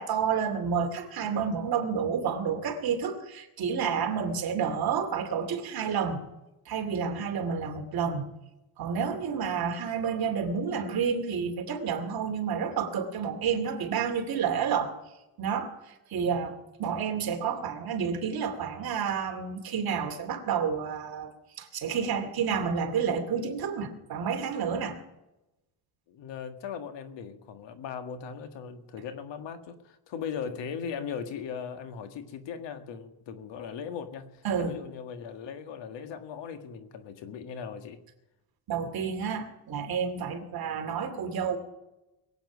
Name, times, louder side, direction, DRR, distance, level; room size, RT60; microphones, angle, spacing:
voice 1, 0.0-6.2 6.7-8.3 8.8-14.9 15.4-15.8 16.1-16.5 16.8-25.0 34.4-34.8 38.7-41.6, right 6 dB, 50° right, 4 dB, 2.6 m, -30 dB
voice 2, 26.1-38.0, left 7 dB, 65° left, 8 dB, 1.8 m, -39 dB
22.0 x 8.9 x 6.1 m, 0.97 s
cardioid pair, 135°, 47 cm